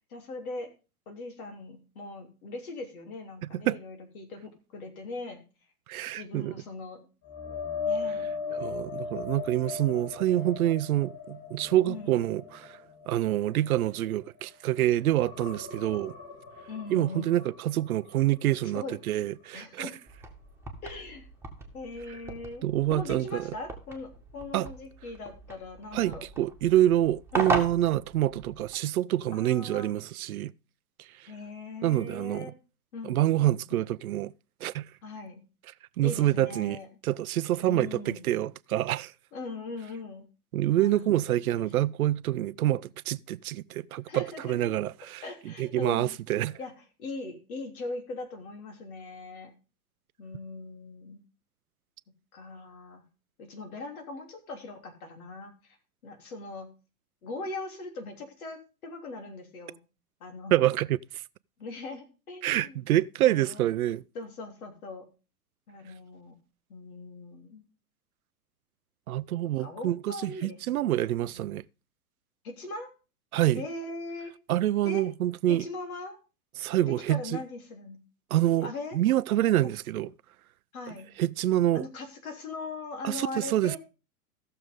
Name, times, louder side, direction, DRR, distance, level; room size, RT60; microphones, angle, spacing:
voice 1, 0.1-0.7 1.1-5.4 6.1-7.1 7.9-8.4 11.8-12.2 16.7-17.4 18.7-19.0 19.5-20.0 20.8-21.3 21.7-26.3 27.3-27.5 29.3-29.9 31.3-32.6 32.9-33.9 35.0-35.4 36.0-36.9 37.6-38.3 39.3-40.3 40.8-41.1 41.6-41.9 44.1-44.7 45.2-46.2 46.6-46.7 47.0-49.5 50.2-51.2 52.3-53.0 53.4-55.5 56.0-56.7 57.2-59.8 60.2-60.7 61.6-62.8 63.2-63.7 64.2-65.1 65.7-66.4 66.7-67.7 69.6-70.9 71.2-71.3 72.4-72.9 73.5-74.3 74.8-75.1 75.5-76.2 76.9-78.0 78.6-79.0 79.6-79.7 80.7-81.1 81.7-83.8, left 3 dB, 65° left, 3.5 m, -40 dB
voice 2, 5.9-6.5 8.5-12.7 13.1-16.1 16.9-19.9 22.6-23.5 24.5-24.7 25.9-30.5 31.8-32.5 33.0-34.3 34.6-34.8 36.0-36.8 37.0-39.1 40.5-46.6 60.5-61.0 62.4-64.0 69.1-71.7 73.3-73.6 74.5-75.6 76.6-77.2 78.3-80.1 81.2-81.9 83.0-83.8, right 13 dB, 70° right, 0.6 m, -27 dB
sound 1, 7.2-14.7 15.0-18.9 19.2-19.5 22.8-22.9, left 5 dB, 35° left, 4.8 m, -38 dB
sound 2, 20.1-28.8, right 3 dB, 5° right, 1.9 m, -37 dB
15.5 x 6.8 x 3.8 m
hypercardioid pair, 110°, 46 cm